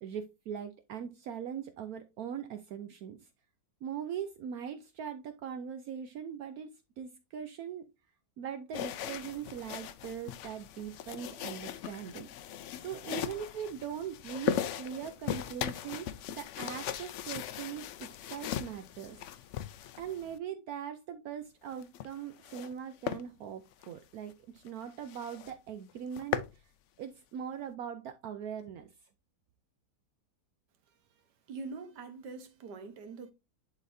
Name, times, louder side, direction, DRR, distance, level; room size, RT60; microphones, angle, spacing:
voice 1, 0.0-3.3 3.8-7.9 8.4-12.3 12.8-19.2 20.0-26.7 27.0-28.9, right 8 dB, 70° right, 1.0 m, -41 dB
sound 1, 8.7-20.4 21.7-22.7 23.0-23.2 23.7-23.9 24.3-24.4 24.7-24.8 25.1-25.5 25.9-26.6, left 10 dB, 75° left, 0.6 m, -38 dB
voice 2, 31.5-33.3, right 4 dB, 85° right, 1.7 m, -43 dB
11.0 x 4.0 x 2.6 m
omnidirectional pair, 1.8 m